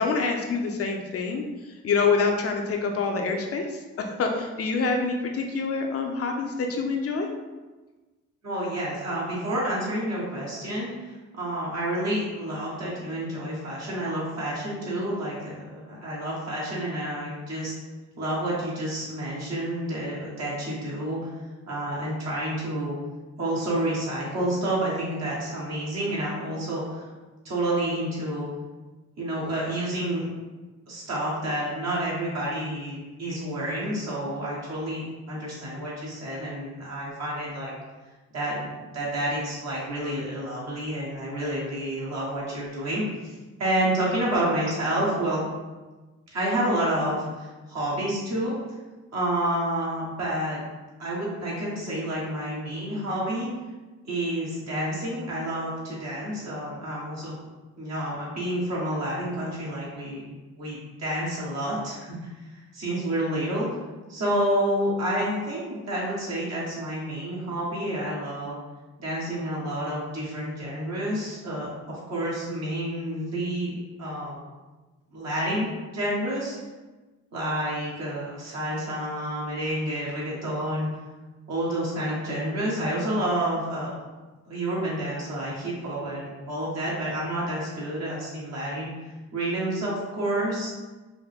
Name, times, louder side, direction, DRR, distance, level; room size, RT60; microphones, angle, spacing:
voice 1, 0.0-1.4 1.8-3.6 4.0-7.3, left 4 dB, 50° left, 2 dB, 0.6 m, -26 dB
voice 2, 8.4-17.7 18.2-21.3 21.7-22.9 23.4-27.0 27.4-28.5 29.2-30.3 30.9-37.7 38.3-45.4 46.3-48.5 49.1-50.6 51.0-53.5 54.0-57.3 57.8-60.2 60.6-63.7 64.1-68.6 69.0-73.7 74.0-74.4 75.1-75.7 75.9-76.6 77.3-80.9 81.5-84.0 84.5-88.9 89.3-90.7, right 1 dB, 60° right, -6 dB, 1.4 m, -29 dB
4.8 x 2.1 x 3.4 m, 1.2 s
cardioid pair, 90°, 30 cm